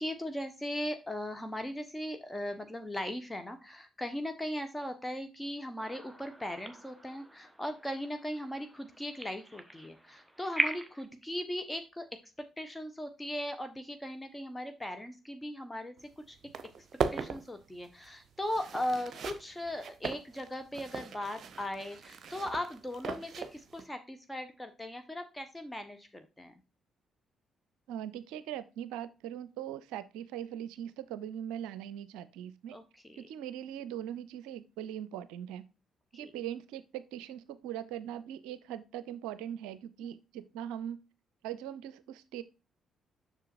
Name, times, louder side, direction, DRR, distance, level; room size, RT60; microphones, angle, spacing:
voice 1, 0.0-12.1 12.6-16.4 17.1-26.5 32.7-33.3 36.2-36.3 40.0-40.2, left 1 dB, 15° left, 7 dB, 1.2 m, -38 dB
sound 1, 5.8-11.1, right 1 dB, 10° right, 1.1 m, -39 dB
sound 2, 16.0-16.1 16.3-23.9, right 5 dB, 50° right, 0.9 m, -39 dB
voice 2, 27.9-32.8 33.2-35.7 36.1-41.0 41.4-42.4, right 10 dB, 70° right, 16 dB, 0.5 m, -40 dB
7.4 x 6.5 x 2.5 m, 0.29 s
figure-of-eight pair, 45°, 0 cm